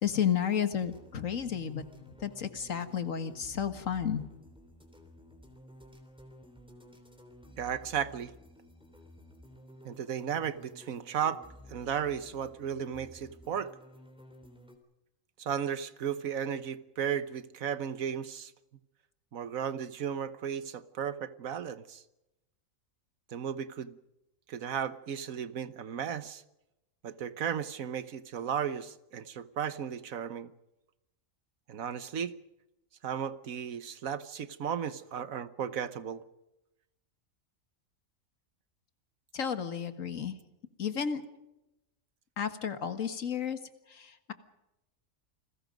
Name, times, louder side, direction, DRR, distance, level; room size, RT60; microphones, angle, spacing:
voice 1, 0.0-1.8 2.2-4.2 39.3-40.4 40.8-41.2 42.4-43.6 43.9-44.3, left 8 dB, 70° left, 10 dB, 2.0 m, -32 dB
sound 1, 0.8-14.8, left 1 dB, 5° right, 3.5 m, -54 dB
voice 2, 7.6-8.3 9.8-11.4 11.7-13.7 15.4-18.5 19.3-22.0 23.3-24.0 24.5-26.4 27.0-30.5 31.7-32.3 33.0-36.2, right 8 dB, 85° right, 14 dB, 1.5 m, -35 dB
29.0 x 21.0 x 5.2 m, 0.92 s
omnidirectional pair, 1.4 m